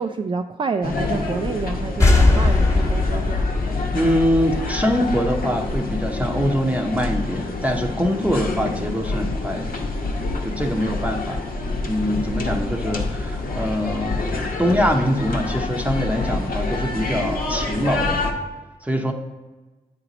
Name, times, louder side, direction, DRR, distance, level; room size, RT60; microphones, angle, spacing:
voice 1, 0.0-3.5, right 4 dB, 35° right, 6 dB, 0.3 m, -28 dB
sound 1, 0.8-18.3, left 2 dB, 70° left, 0.9 m, -27 dB
sound 2, 2.0-5.5, left 3 dB, 20° left, 1.0 m, -20 dB
voice 2, 3.9-9.7 10.4-11.4 11.9-14.3 14.6-18.2 18.8-19.1, equal, 10° right, 3 dB, 0.8 m, -23 dB
8.6 x 3.0 x 4.0 m, 1.2 s
cardioid pair, 50°, 15 cm